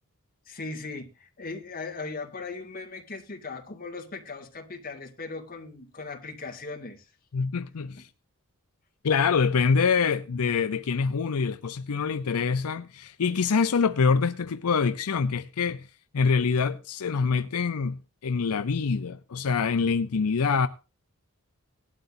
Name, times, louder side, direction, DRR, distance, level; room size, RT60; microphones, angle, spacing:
voice 1, 0.5-7.1, left 3 dB, 40° left, 2.1 m, -38 dB
voice 2, 7.3-8.1 9.0-15.9 16.1-20.7, left 5 dB, 80° left, 0.6 m, -25 dB
18.0 x 12.0 x 2.6 m
head